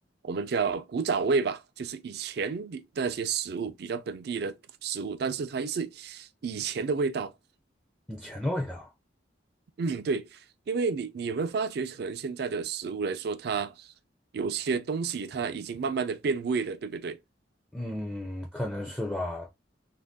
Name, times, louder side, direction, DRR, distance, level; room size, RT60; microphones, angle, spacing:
voice 1, 0.2-7.3 9.8-13.9 14.3-17.2, right 5 dB, 60° right, 0.4 m, -31 dB
voice 2, 8.1-8.9 17.7-19.5, left 1 dB, 5° left, 0.4 m, -33 dB
2.5 x 2.2 x 3.5 m
head